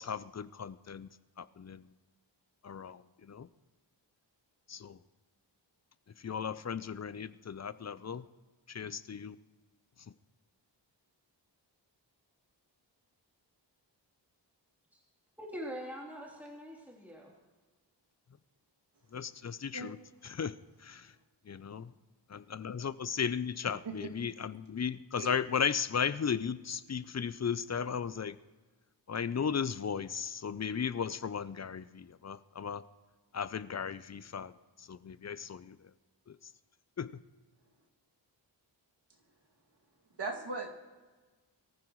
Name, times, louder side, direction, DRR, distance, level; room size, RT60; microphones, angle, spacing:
voice 1, 0.0-1.9 2.6-3.5 4.7-5.0 6.2-8.3 8.7-9.4 10.0-10.1 19.1-20.0 20.2-21.2 21.4-21.9 22.3-28.4 29.1-32.8 33.3-35.9 36.3-36.5 37.0-37.2, left 7 dB, 40° left, 15 dB, 0.5 m, -36 dB
voice 2, 15.4-17.3, equal, 5° right, -3 dB, 3.3 m, -43 dB
voice 3, 23.6-24.1 25.2-25.3 40.1-40.7, right 3 dB, 65° right, 0 dB, 2.4 m, -39 dB
23.5 x 14.5 x 3.1 m, 1.3 s
wide cardioid pair, 115°, 44 cm